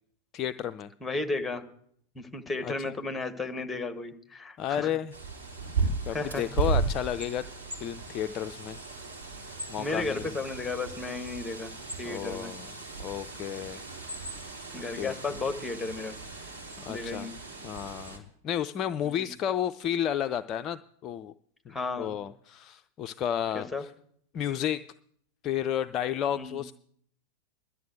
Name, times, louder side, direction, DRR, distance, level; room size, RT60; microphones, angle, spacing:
voice 1, 0.3-0.9 2.6-2.9 4.6-5.1 6.1-7.5 7.8-8.8 9.7-10.3 12.0-12.7 13.0-13.8 14.7-15.2 16.8-17.3 17.6-21.3 21.7-23.9 24.3-24.8 25.4-26.7, left 10 dB, 30° left, 10 dB, 0.4 m, -32 dB
voice 2, 1.0-1.6 2.1-4.9 6.1-6.4 9.8-11.7 12.0-12.5 14.7-16.1 16.9-17.3 19.0-19.3 21.7-22.2 23.5-23.8 26.4-26.6, left 3 dB, 5° left, 8 dB, 1.3 m, -34 dB
Bird, 5.1-18.2, right 4 dB, 70° right, 3.4 m, -35 dB
11.0 x 8.2 x 9.0 m, 0.65 s
figure-of-eight pair, 90°, 0 cm